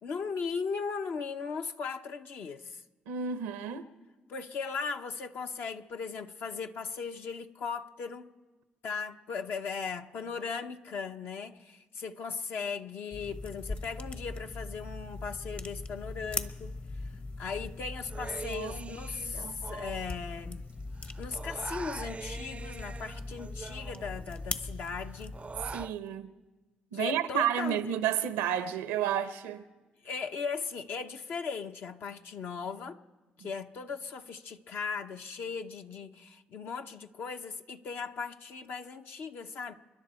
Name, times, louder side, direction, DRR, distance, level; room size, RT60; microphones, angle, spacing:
voice 1, 0.0-2.8 4.3-8.3 8.8-16.7 17.4-20.7 21.2-25.4 26.9-27.9 30.0-33.0 33.4-39.7, left 5 dB, 65° left, 0.9 m, -38 dB
voice 2, 3.1-3.9 18.5-19.6 25.7-26.3 26.9-29.6 33.4-33.5, right 9 dB, 90° right, 0.7 m, -32 dB
sound 1, 13.1-25.9, left 3 dB, 45° left, 1.2 m, -40 dB
Human voice, 18.1-20.7 21.0-24.5 24.8-25.9, right 4 dB, 35° right, 0.4 m, -44 dB
29.0 x 10.5 x 4.4 m
supercardioid pair, 50°, 4 cm